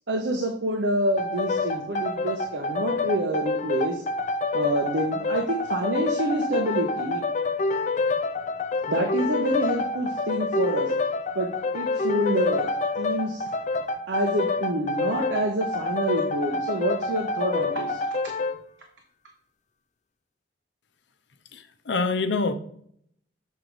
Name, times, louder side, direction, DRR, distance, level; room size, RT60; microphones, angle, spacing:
voice 1, 0.1-4.0 4.5-7.2 8.9-10.9 11.3-12.7 13.0-13.4 14.1-18.0, right 1 dB, 75° right, 2 dB, 0.9 m, -27 dB
sound 1, 1.2-18.6, left 3 dB, 40° left, 0.5 m, -27 dB
voice 2, 21.5-22.5, left 3 dB, 75° left, 9 dB, 0.7 m, -26 dB
7.4 x 4.7 x 4.0 m, 0.66 s
head